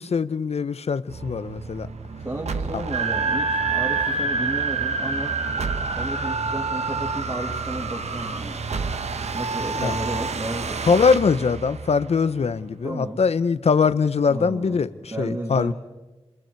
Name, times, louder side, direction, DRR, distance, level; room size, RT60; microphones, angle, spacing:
voice 1, 0.0-1.9 2.7-2.8 9.8-9.9 10.9-15.7, left 5 dB, 70° left, 14 dB, 0.8 m, -22 dB
sound 1, 1.1-12.6, right 4 dB, 85° right, 1.0 m, -31 dB
voice 2, 2.2-5.3 6.0-8.6 9.3-11.2 12.8-13.2 14.3-15.7, right 1 dB, 35° right, -2 dB, 2.7 m, -33 dB
sound 2, 2.9-8.4, right 4 dB, 70° right, 1.7 m, -27 dB
28.0 x 27.5 x 4.7 m, 1.1 s
wide cardioid pair, 80°, 11 cm